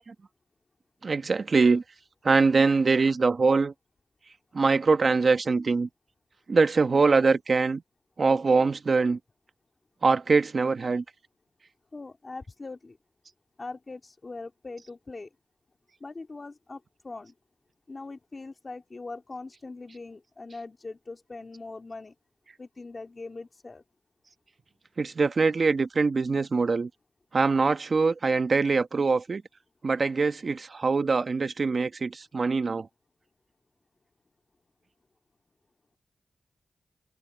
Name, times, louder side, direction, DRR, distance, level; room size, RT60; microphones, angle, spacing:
voice 1, 1.0-1.8 2.2-3.7 4.5-5.9 6.5-7.8 8.2-9.2 10.0-11.0 25.0-26.9 27.3-29.4 29.8-32.9, right 4 dB, 50° right, 1.4 m, -23 dB
voice 2, 11.9-13.0 13.6-15.3 16.0-17.3 17.9-22.1 22.6-23.8, left 3 dB, 35° left, 2.1 m, -41 dB
cardioid pair, 80°, 0 cm